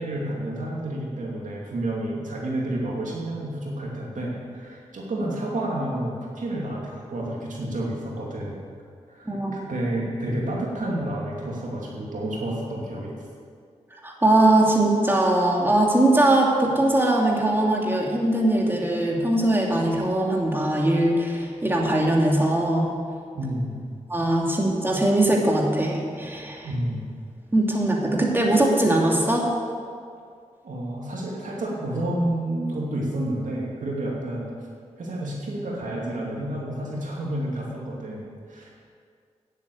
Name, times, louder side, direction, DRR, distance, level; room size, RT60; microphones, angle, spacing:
voice 1, 0.0-8.6 9.1-13.1 23.3-23.9 26.6-27.1 30.6-34.5 35.0-38.7, right 1 dB, 75° right, -3 dB, 2.6 m, -30 dB
voice 2, 14.0-22.9 24.1-26.7 27.5-29.5, right 1 dB, 15° right, -2 dB, 2.6 m, -21 dB
9.9 x 8.2 x 8.2 m, 2.2 s
cardioid pair, 45°, 13 cm